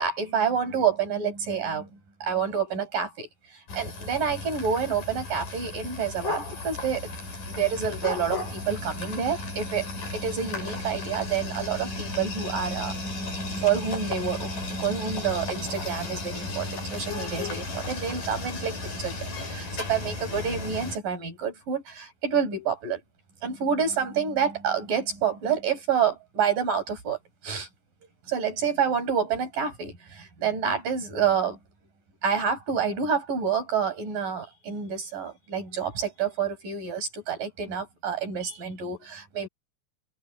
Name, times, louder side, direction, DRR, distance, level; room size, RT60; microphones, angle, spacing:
voice 1, 0.0-7.1 7.5-12.9 13.6-19.2 19.4-23.0 23.4-27.7 28.3-31.6 32.2-39.5, right 7 dB, 60° right, 7.7 m, -28 dB
sound 1, 3.7-21.0, left 2 dB, 60° left, 9.3 m, -34 dB
omnidirectional pair, 4.4 m